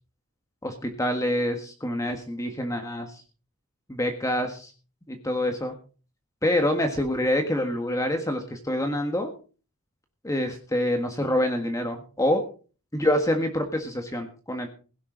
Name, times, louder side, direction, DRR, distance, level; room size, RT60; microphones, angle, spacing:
voice 1, 0.6-3.1 3.9-4.7 5.1-5.7 6.4-9.3 10.2-12.4 12.9-14.7, left 1 dB, 15° left, 5 dB, 1.6 m, -26 dB
16.5 x 11.5 x 3.9 m, 0.37 s
head